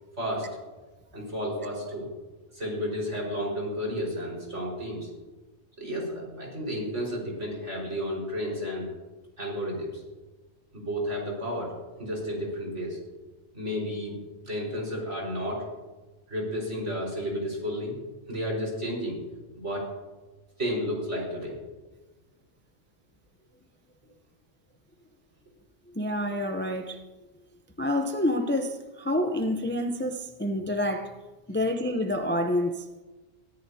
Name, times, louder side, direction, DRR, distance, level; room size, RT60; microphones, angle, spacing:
voice 1, 0.2-0.5 1.1-2.1 2.5-5.1 5.8-8.9 9.4-10.0 10.7-11.7 12.0-13.0 13.5-14.1 14.4-15.6 16.3-18.0 18.3-19.2 19.6-19.8 20.6-21.6, equal, 65° right, 5.4 m, -32 dB
voice 2, 25.9-27.0 27.8-31.1 31.5-32.9, left 1 dB, 10° left, 0.7 m, -28 dB
22.5 x 14.0 x 2.9 m
omnidirectional pair, 1.3 m